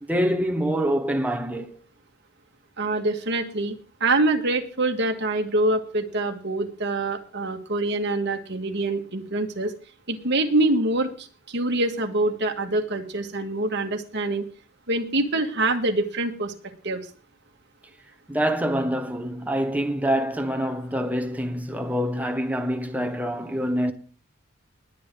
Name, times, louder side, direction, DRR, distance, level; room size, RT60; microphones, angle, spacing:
voice 1, 0.0-1.8 18.3-23.9, equal, 5° right, 1.2 m, -25 dB
voice 2, 2.8-9.7 10.1-14.4 14.9-16.5 16.8-17.0, right 2 dB, 55° right, 2.0 m, -25 dB
20.5 x 9.0 x 3.9 m
head